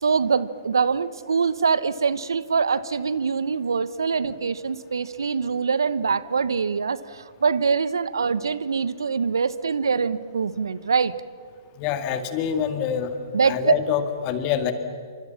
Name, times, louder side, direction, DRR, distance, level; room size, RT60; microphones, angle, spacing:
voice 1, 0.0-11.1 13.3-13.7, right 5 dB, 75° right, 16 dB, 1.1 m, -24 dB
voice 2, 11.8-13.1 13.4-14.7, left 8 dB, 30° left, 8 dB, 2.2 m, -25 dB
28.0 x 25.5 x 7.2 m, 2.1 s
figure-of-eight pair, 130°, 2 cm